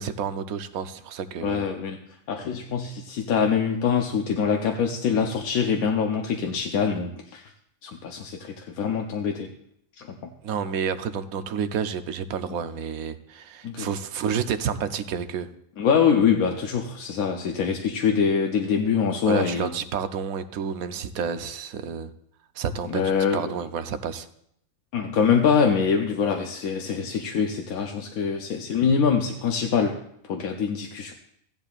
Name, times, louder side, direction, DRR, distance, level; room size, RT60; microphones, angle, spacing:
voice 1, 0.0-1.7 10.4-15.5 19.3-22.1 22.6-23.0 23.3-24.3, right 7 dB, 90° right, 1.2 m, -30 dB
voice 2, 1.4-2.0 2.3-7.5 7.8-9.5 10.0-10.2 13.6-13.9 15.8-19.7 22.9-23.4 24.9-30.0 30.2-31.1, left 6 dB, 85° left, 1.3 m, -24 dB
15.0 x 10.5 x 2.4 m
omnidirectional pair, 1.4 m